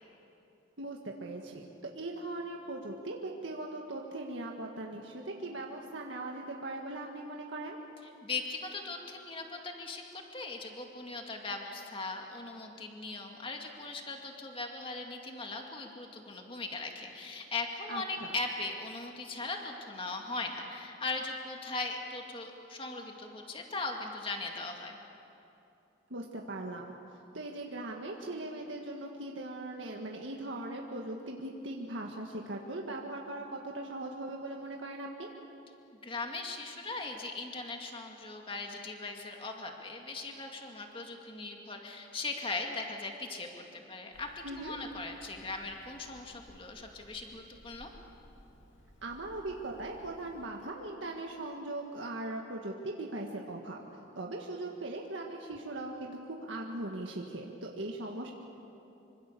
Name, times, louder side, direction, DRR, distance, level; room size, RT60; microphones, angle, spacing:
voice 1, 0.8-1.7 1.9-7.8 17.9-18.4 26.1-35.3 44.4-44.8 49.0-53.8 54.2-58.3, right 2 dB, 80° right, 0 dB, 1.8 m, -40 dB
voice 2, 8.2-25.0 36.0-47.9, left 3 dB, 30° left, 2 dB, 2.2 m, -39 dB
Hammer, 44.1-50.5, equal, 85° left, 2.7 m, -58 dB
26.0 x 25.0 x 6.9 m, 2.9 s
head